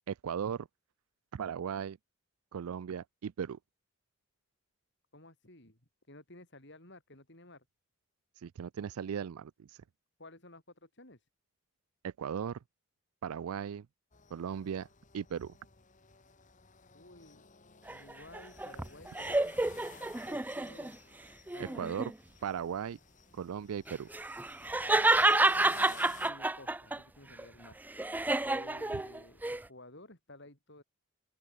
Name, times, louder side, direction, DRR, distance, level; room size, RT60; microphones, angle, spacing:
voice 1, 0.1-0.7 1.3-2.0 2.5-3.6 8.4-9.8 12.0-12.6 13.2-13.9 14.3-14.9 15.1-15.5 21.6-22.1 22.4-23.0 23.3-24.1, right 7 dB, 80° right, 0.4 m, -37 dB
voice 2, 5.1-5.8 6.1-7.6 10.2-11.2 16.9-17.5 17.9-19.9 20.2-21.0 21.5-22.1 24.8-27.8 28.4-30.8, left 2 dB, 55° left, 5.0 m, -54 dB
sound 1, 14.1-26.3, left 5 dB, 35° left, 1.4 m, -56 dB
sound 2, 17.9-20.9 21.5-22.1 23.9-27.0 27.4-29.6, right 2 dB, 10° right, 0.4 m, -29 dB
open air
head